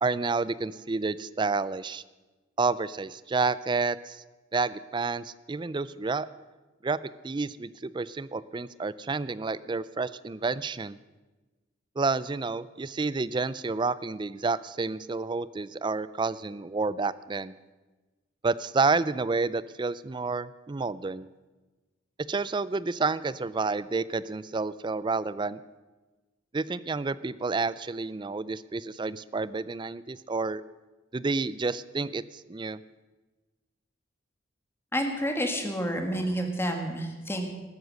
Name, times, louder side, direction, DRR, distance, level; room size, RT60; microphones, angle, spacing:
voice 1, 0.0-2.0 2.6-4.2 4.5-6.3 6.8-7.0 7.2-11.0 12.0-17.5 18.4-21.3 22.3-25.6 26.5-30.6 31.1-32.8, right 4 dB, 25° right, 17 dB, 0.4 m, -29 dB
voice 2, 34.9-37.5, equal, 10° left, 3 dB, 1.9 m, -29 dB
14.5 x 13.0 x 6.5 m, 1.2 s
head